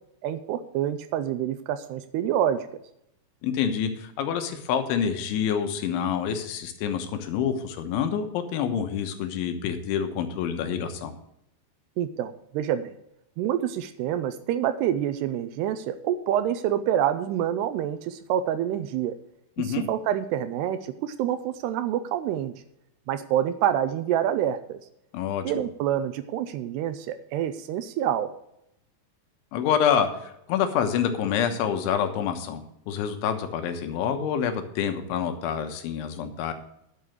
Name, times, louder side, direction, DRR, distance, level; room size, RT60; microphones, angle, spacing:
voice 1, 0.2-2.8 12.0-13.0 13.4-19.2 19.6-22.5 23.1-24.8 25.4-28.3, right 10 dB, 80° right, 11 dB, 2.5 m, -27 dB
voice 2, 3.4-11.1 19.6-19.9 25.1-25.6 29.5-36.5, left 8 dB, 85° left, 6 dB, 3.6 m, -27 dB
11.0 x 6.8 x 6.4 m, 0.78 s
omnidirectional pair, 5.3 m